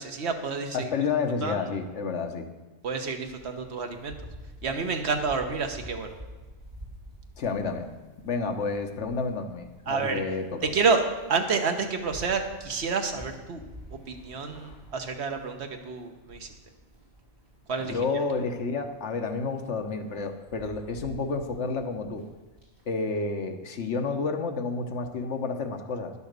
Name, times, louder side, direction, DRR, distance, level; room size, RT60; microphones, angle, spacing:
voice 1, 0.0-0.9 1.4-1.6 2.8-4.1 4.6-6.1 9.9-10.2 10.6-11.0 11.3-13.6 13.9-16.5 17.7-18.0, right 4 dB, 60° right, 5 dB, 1.3 m, -29 dB
voice 2, 0.7-2.5 7.4-7.9 8.2-10.7 14.5-14.8 17.8-22.2 22.8-26.1, left 4 dB, 70° left, 5 dB, 1.3 m, -30 dB
sound 1, 3.2-22.9, equal, 35° right, 4.2 m, -49 dB
10.5 x 7.0 x 6.6 m, 1.3 s
omnidirectional pair, 1.2 m